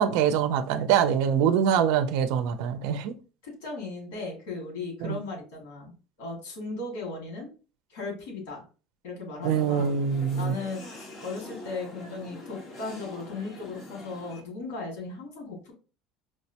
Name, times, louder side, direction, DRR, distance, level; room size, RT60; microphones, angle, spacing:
voice 1, 0.0-3.1 5.0-5.2 9.4-10.5, right 8 dB, 65° right, 0.4 m, -24 dB
voice 2, 3.4-7.5 7.9-8.6 9.0-10.0 10.4-15.7, left 3 dB, 85° left, 2.0 m, -37 dB
sound 1, 9.4-14.4, left 2 dB, 35° left, 1.1 m, -44 dB
4.6 x 2.1 x 2.8 m
cardioid pair, 155°, 0 cm